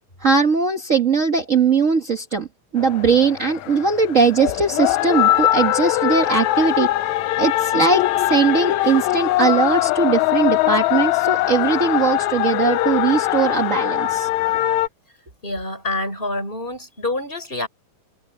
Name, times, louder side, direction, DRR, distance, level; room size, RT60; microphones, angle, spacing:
voice 1, 0.2-2.5 2.7-6.9 7.4-14.3, right 5 dB, 55° right, 0.8 m, -19 dB
sound 1, 2.8-14.9, left 15 dB, 85° left, 1.7 m, -21 dB
voice 2, 15.4-17.7, left 2 dB, 15° left, 5.2 m, -27 dB
omnidirectional pair, 4.0 m